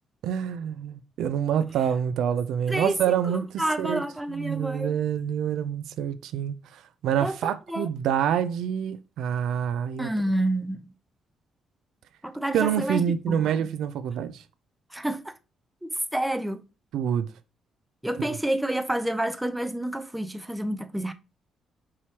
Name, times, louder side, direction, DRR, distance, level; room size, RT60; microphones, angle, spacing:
voice 1, 0.2-4.0 4.3-10.1 12.5-14.4 16.9-17.3 18.2-18.4, right 9 dB, 80° right, 0.3 m, -27 dB
voice 2, 3.6-4.9 7.2-7.9 10.0-10.9 12.2-13.0 13.3-13.5 14.9-15.3 15.8-16.6 18.0-21.1, right 1 dB, 5° right, 0.5 m, -29 dB
4.7 x 2.9 x 2.8 m
cardioid pair, 90°, 0 cm